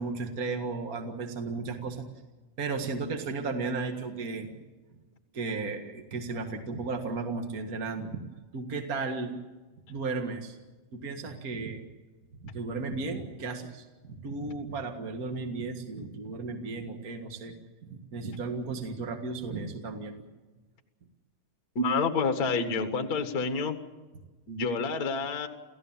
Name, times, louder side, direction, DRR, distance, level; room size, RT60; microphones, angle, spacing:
voice 1, 0.0-2.0 2.6-4.5 5.3-8.2 8.5-9.4 9.9-10.6 10.9-11.8 12.4-17.5 17.8-20.1, right 4 dB, 35° right, 4 dB, 1.5 m, -34 dB
voice 2, 21.7-23.8 24.5-25.5, left 4 dB, 40° left, 7 dB, 1.4 m, -28 dB
29.5 x 16.0 x 7.3 m, 1.2 s
omnidirectional pair, 3.8 m